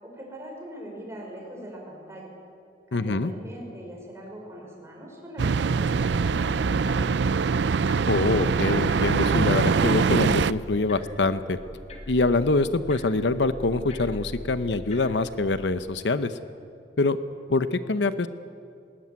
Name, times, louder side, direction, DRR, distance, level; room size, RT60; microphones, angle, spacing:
voice 1, 0.0-2.3 2.9-7.5, right 1 dB, 15° right, -1 dB, 5.8 m, -41 dB
voice 2, 2.9-3.3 8.1-11.6 12.1-16.3 17.0-17.2 17.5-18.3, left 3 dB, 80° left, 12 dB, 0.8 m, -24 dB
sound 1, 5.4-10.5, right 5 dB, 75° right, 0.5 m, -23 dB
sound 2, 5.9-15.8, equal, 40° left, 2.8 m, -42 dB
19.5 x 19.5 x 9.5 m, 2.4 s
head